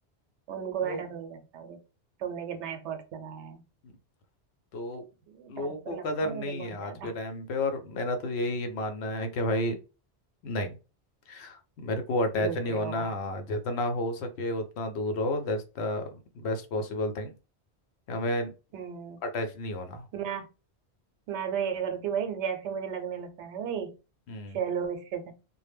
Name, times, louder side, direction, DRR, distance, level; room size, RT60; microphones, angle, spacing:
voice 1, 0.5-1.8 2.2-3.6 5.3-7.1 12.4-13.1 18.7-19.2 20.1-20.5 21.3-23.9 24.5-25.2, right 7 dB, 85° right, 7 dB, 0.9 m, -34 dB
voice 2, 4.7-5.0 5.5-9.8 10.4-10.8 11.3-16.1 16.3-17.3 18.1-18.5 19.2-20.1 24.3-24.6, left 1 dB, 75° left, 6 dB, 0.8 m, -31 dB
2.0 x 2.0 x 3.3 m, 0.32 s
omnidirectional pair, 1.1 m